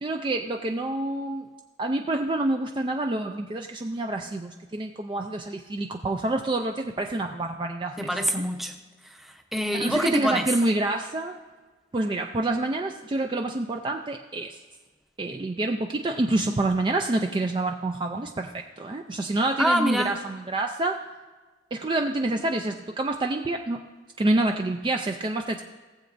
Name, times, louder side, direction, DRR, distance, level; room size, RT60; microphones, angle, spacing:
voice 1, 0.0-1.4 1.8-8.2 9.7-11.4 11.9-14.6 15.2-21.0 21.7-23.8 24.2-25.6, right 2 dB, 25° right, 3 dB, 0.4 m, -27 dB
voice 2, 8.0-8.7 9.2-10.5 19.6-20.1, equal, ahead, 3 dB, 0.7 m, -25 dB
17.5 x 7.7 x 2.6 m, 1.3 s
head